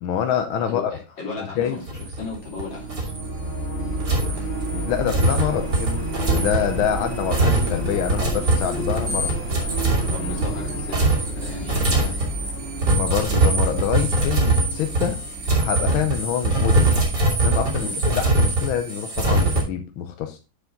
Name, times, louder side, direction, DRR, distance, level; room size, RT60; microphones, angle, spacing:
voice 1, 0.0-0.9 1.4-1.8 4.1-4.3 4.7-5.9 6.3-9.3 12.9-15.2 15.6-16.9 17.4-20.4, left 9 dB, 90° left, 6 dB, 1.6 m, -26 dB
voice 2, 0.6-3.1 10.1-12.2 17.8-18.0, left 2 dB, 65° left, -10 dB, 3.7 m, -36 dB
sound 1, 1.9-2.6 2.9-3.2 4.0-19.6, right 2 dB, 55° right, 3.3 m, -22 dB
sound 2, 2.3-17.2, right 1 dB, 35° right, 1.4 m, -31 dB
7.2 x 7.1 x 3.8 m, 0.30 s
omnidirectional pair, 2.2 m